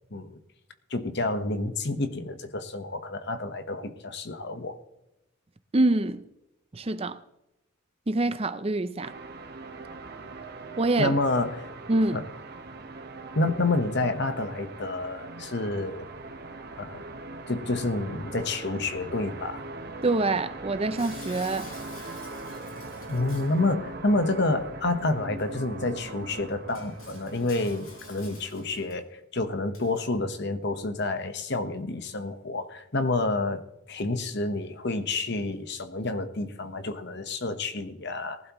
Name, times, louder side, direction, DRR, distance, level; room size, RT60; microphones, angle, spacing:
voice 1, 0.9-4.8 11.0-11.7 12.1-12.2 13.3-16.1 16.8-17.0 17.5-19.6 23.1-29.1 29.3-33.6 33.9-38.4, left 2 dB, 55° left, 1.2 m, -29 dB
voice 2, 5.7-6.2 6.7-7.2 8.1-9.1 10.8-11.2 11.9-12.2 20.0-21.7, right 2 dB, 30° right, 0.5 m, -25 dB
sound 1, 9.0-28.9, right 2 dB, 50° right, 1.2 m, -41 dB
Shatter, 21.0-23.6 25.4-25.5 26.0-26.1 26.7-28.9 29.7-30.0, left 3 dB, 80° left, 4.4 m, -48 dB
19.0 x 12.0 x 3.1 m
head